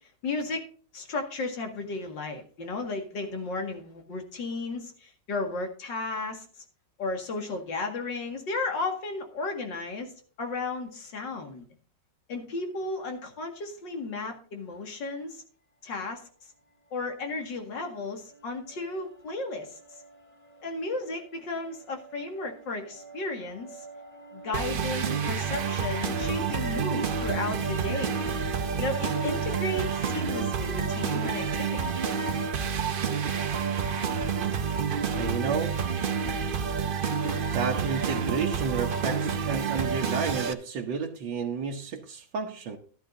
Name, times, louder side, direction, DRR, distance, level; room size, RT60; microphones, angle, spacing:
voice 1, 0.2-0.7 0.9-6.5 7.0-10.1 10.4-11.6 12.3-15.4 15.8-16.3 16.9-19.8 20.6-23.8 24.3-28.2 28.8-32.0, left 3 dB, 80° left, 2.7 m, -34 dB
sound 1, 16.9-33.8, right 3 dB, 5° left, 3.3 m, -47 dB
sound 2, 24.5-40.5, right 6 dB, 60° right, 0.5 m, -29 dB
voice 2, 35.1-35.8 37.5-42.8, right 5 dB, 90° right, 1.8 m, -31 dB
13.0 x 11.5 x 2.7 m
omnidirectional pair, 1.9 m